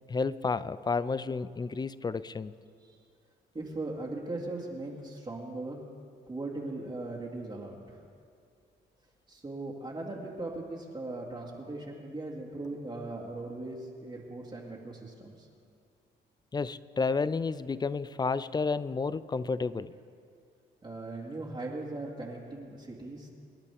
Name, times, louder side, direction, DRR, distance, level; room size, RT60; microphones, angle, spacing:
voice 1, 0.1-2.5 16.5-19.9, left 4 dB, 20° left, 17 dB, 0.4 m, -31 dB
voice 2, 3.5-5.8 6.3-8.0 9.3-15.5 20.8-23.3, right 2 dB, 25° right, -6 dB, 2.1 m, -39 dB
26.5 x 11.0 x 3.5 m, 2.3 s
cardioid pair, 90°, 20 cm